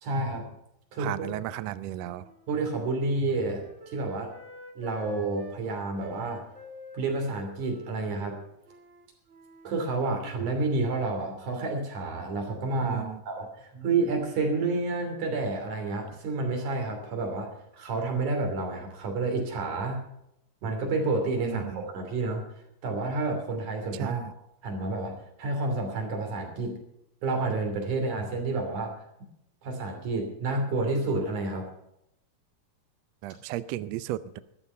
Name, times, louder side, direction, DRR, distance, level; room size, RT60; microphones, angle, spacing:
voice 1, 0.0-0.5 0.9-1.3 2.5-4.3 4.8-6.4 6.9-8.4 9.6-20.0 20.6-22.4 22.8-24.2 24.6-26.8 27.2-28.9 29.6-31.7, right 3 dB, 65° right, 3 dB, 4.4 m, -30 dB
voice 2, 1.0-2.3 12.8-13.2 21.4-21.8 23.9-24.3 33.2-34.4, right 14 dB, 85° right, 14 dB, 1.5 m, -34 dB
Wind instrument woodwind instrument, 2.2-5.6 6.0-10.4, right 1 dB, 40° right, 0.9 m, -48 dB
13.5 x 12.5 x 5.6 m, 0.80 s
omnidirectional pair, 3.8 m